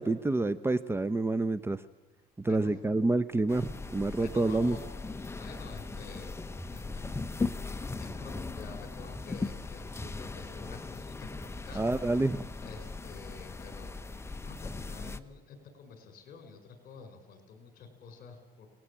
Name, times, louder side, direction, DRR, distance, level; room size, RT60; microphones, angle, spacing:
voice 1, 0.0-1.8 2.4-4.8 11.7-12.5, right 2 dB, 15° right, 13 dB, 0.8 m, -28 dB
voice 2, 2.4-2.8 4.2-5.0 5.3-6.4 6.7-7.0 8.0-11.8 12.6-14.0 14.3-18.7, left 5 dB, 60° left, 6 dB, 6.0 m, -49 dB
sound 1, 3.5-15.2, left 3 dB, 15° left, 1.0 m, -39 dB
29.0 x 19.5 x 8.7 m, 1.2 s
cardioid pair, 110°, 17 cm